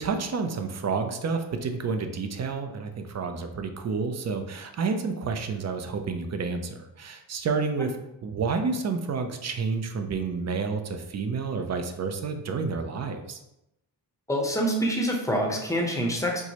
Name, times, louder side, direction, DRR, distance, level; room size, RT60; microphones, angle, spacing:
voice 1, 0.0-7.9 8.2-13.4, right 4 dB, 40° right, 6 dB, 0.4 m, -30 dB
voice 2, 14.3-16.4, equal, 5° left, 0 dB, 0.7 m, -26 dB
4.4 x 2.1 x 2.9 m, 0.87 s
cardioid pair, 85°, 44 cm